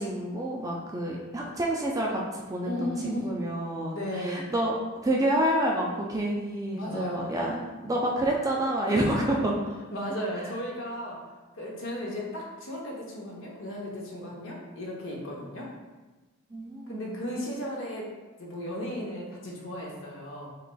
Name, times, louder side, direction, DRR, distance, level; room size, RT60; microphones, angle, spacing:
voice 1, 0.0-4.7 5.0-9.5 16.5-17.2, right 1 dB, 15° right, -2 dB, 0.3 m, -28 dB
voice 2, 2.7-3.3 3.9-4.4 6.7-7.3 8.8-9.4 9.9-11.2 11.5-15.7 16.9-18.1 18.4-20.5, equal, 60° left, -3 dB, 0.8 m, -35 dB
3.9 x 3.1 x 2.2 m, 1.2 s
head